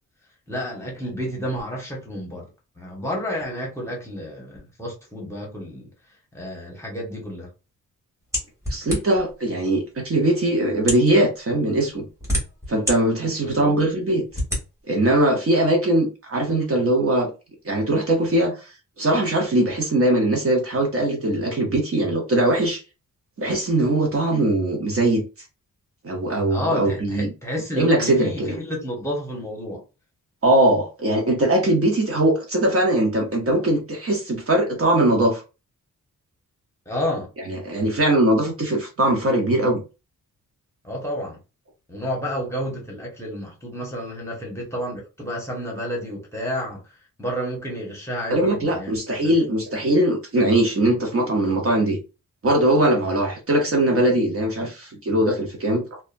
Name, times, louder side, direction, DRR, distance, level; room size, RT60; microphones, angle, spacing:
voice 1, 0.5-2.5 2.8-5.9 6.3-7.5 13.4-13.7 26.5-29.8 36.9-37.3 40.8-41.4 41.9-46.8 47.2-49.0 49.2-49.3, equal, 10° left, 1.0 m, -30 dB
sound 1, 8.3-9.3 10.1-10.2 10.8-11.1 11.9-13.0 13.5-13.6 14.3-14.6, equal, 10° right, 1.5 m, -26 dB
voice 2, 8.7-12.1 12.7-14.2 14.9-17.3 17.6-18.6 19.0-22.8 23.4-25.2 26.0-27.3 27.8-28.5 30.4-35.4 37.5-39.8 48.3-52.0 52.4-55.8, right 1 dB, 45° right, 0.8 m, -21 dB
2.7 x 2.3 x 2.5 m
wide cardioid pair, 130°, 33 cm